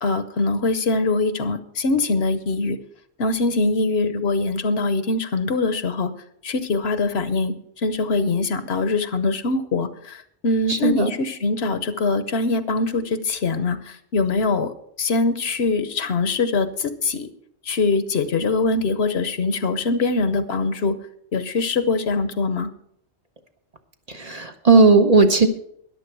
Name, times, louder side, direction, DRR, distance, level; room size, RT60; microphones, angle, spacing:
voice 1, 0.0-2.8 3.2-6.1 6.4-7.5 7.8-14.7 15.0-17.3 17.7-20.9 21.3-22.7, left 3 dB, 65° left, 12 dB, 1.1 m, -23 dB
voice 2, 10.7-11.1 24.1-25.5, right 3 dB, 35° right, 5 dB, 1.0 m, -16 dB
13.5 x 10.5 x 4.6 m, 0.68 s
omnidirectional pair, 1.2 m